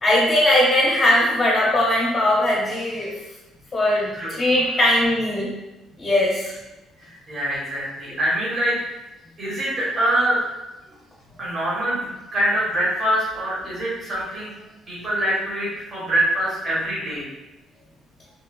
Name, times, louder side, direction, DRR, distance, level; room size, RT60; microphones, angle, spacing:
voice 1, 0.0-3.1 3.7-5.5 6.0-6.6, left 1 dB, 25° left, -6 dB, 0.7 m, -19 dB
voice 2, 7.1-8.8 9.4-10.4 11.4-14.5 14.9-17.2, right 1 dB, 35° right, -7 dB, 1.2 m, -24 dB
3.1 x 2.1 x 2.3 m, 1.0 s
cardioid pair, 90°, 0 cm